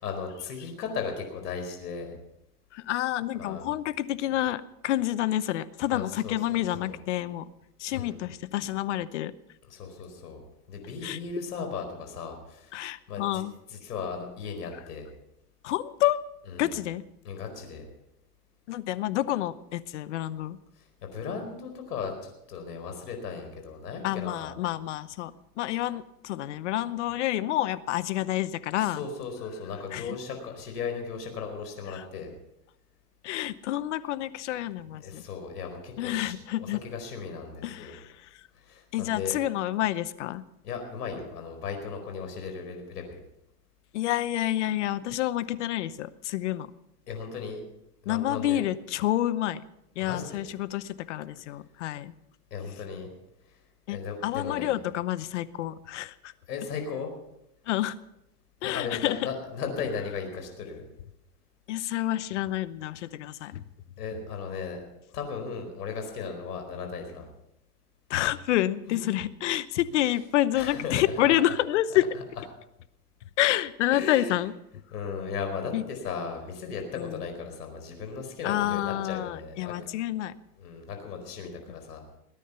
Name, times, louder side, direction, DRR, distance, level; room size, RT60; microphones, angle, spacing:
voice 1, 0.0-2.2 3.4-3.6 5.9-6.9 7.9-8.2 9.6-10.4 10.7-12.8 13.1-13.4 13.7-15.1 16.5-16.7 17.2-17.9 20.8-24.5 28.8-32.3 35.0-38.0 38.5-39.3 40.6-43.1 47.1-47.6 48.0-48.7 50.0-50.4 52.5-53.1 53.4-53.6 53.9-54.7 56.5-57.1 58.6-60.8 64.0-64.8 65.1-67.3 68.9-69.1 70.5-71.3 73.9-74.4 74.9-79.7 80.6-82.0, left 5 dB, 80° left, 4 dB, 4.8 m, -36 dB
voice 2, 2.7-7.5 7.8-9.3 11.0-11.2 12.7-13.5 15.6-16.2 16.6-17.0 18.7-20.6 24.0-29.0 29.9-30.2 31.9-32.0 33.2-35.2 36.0-36.8 37.6-38.5 38.9-40.4 43.9-46.7 48.1-49.6 50.0-52.1 53.9-56.3 57.7-58.0 58.6-59.2 61.7-63.6 68.1-72.1 73.4-74.5 75.7-75.8 77.0-77.2 78.4-80.3, left 14 dB, 50° left, 16 dB, 0.8 m, -28 dB
21.0 x 10.0 x 5.7 m, 0.83 s
supercardioid pair, 155°, 46 cm